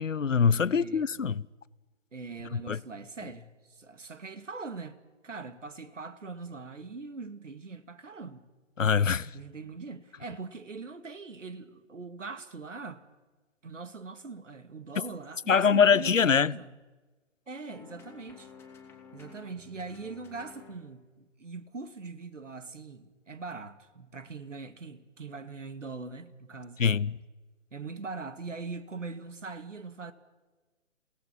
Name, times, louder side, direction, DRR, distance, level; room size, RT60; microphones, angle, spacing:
voice 1, 0.0-1.4 2.5-2.8 8.8-9.3 15.5-16.5 26.8-27.2, left 6 dB, 85° left, 0.8 m, -24 dB
voice 2, 0.7-1.2 2.1-8.5 9.3-13.0 13.6-16.8 17.5-18.5 19.1-26.8 27.7-30.1, right 4 dB, 75° right, 2.2 m, -42 dB
sound 1, 17.7-20.9, left 5 dB, 5° left, 2.6 m, -51 dB
29.0 x 18.0 x 6.1 m
figure-of-eight pair, 140°, 37 cm